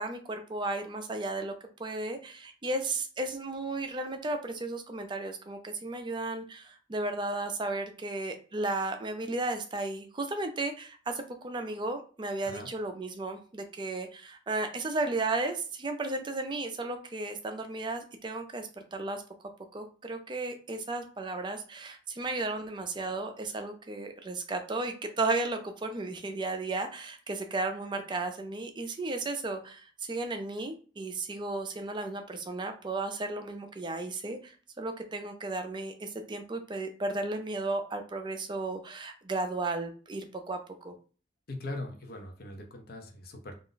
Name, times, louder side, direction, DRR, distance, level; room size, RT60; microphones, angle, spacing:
voice 1, 0.0-1.5 1.8-19.2 19.7-40.6 40.8-40.9, right 2 dB, 25° right, 6 dB, 0.4 m, -34 dB
voice 2, 41.5-43.6, left 2 dB, 55° left, 3 dB, 0.6 m, -40 dB
2.4 x 2.0 x 3.8 m, 0.39 s
head